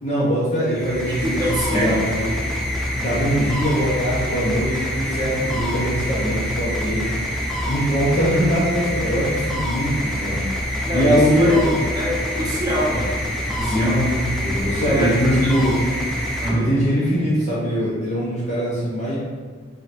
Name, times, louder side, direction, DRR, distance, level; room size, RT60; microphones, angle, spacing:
voice 1, 0.0-1.4 1.7-2.0 3.0-7.0 7.6-11.7 13.7-14.1 14.4-15.7 16.5-19.2, equal, 35° left, -9 dB, 0.8 m, -22 dB
sound 1, 0.6-17.2, equal, ahead, 0.5 m, -26 dB
voice 2, 1.1-2.4 10.9-14.1 14.8-15.6 16.4-16.7, equal, 20° right, -6 dB, 0.9 m, -25 dB
4.3 x 3.8 x 2.6 m, 1.5 s
head